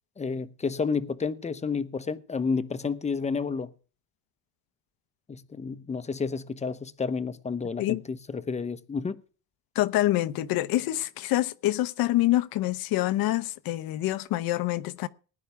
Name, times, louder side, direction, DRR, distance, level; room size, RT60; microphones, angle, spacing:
voice 1, 0.2-3.7 5.3-9.2, left 5 dB, 15° left, 0.9 m, -30 dB
voice 2, 9.7-15.1, left 16 dB, 65° left, 1.0 m, -26 dB
20.0 x 10.5 x 3.5 m
cardioid pair, 120°, 38 cm